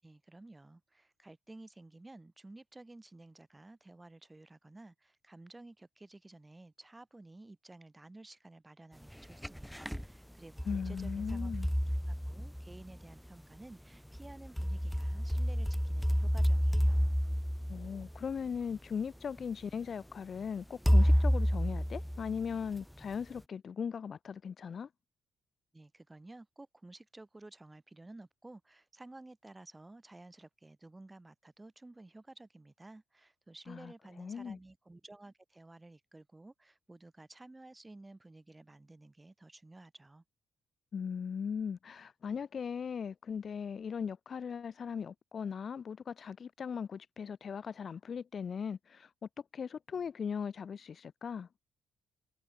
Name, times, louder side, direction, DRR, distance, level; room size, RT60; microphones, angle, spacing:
voice 1, 0.0-11.5 12.1-17.0 25.7-40.2, right 2 dB, 15° right, 5.6 m, -54 dB
sound 1, 9.1-10.1 10.6-13.0 14.1-18.6 19.4-19.5 20.9-22.8, equal, ahead, 1.6 m, -30 dB
voice 2, 10.7-11.7 17.7-24.9 33.7-34.6 40.9-51.5, left 6 dB, 45° left, 0.9 m, -39 dB
cardioid pair, 90°, 0 cm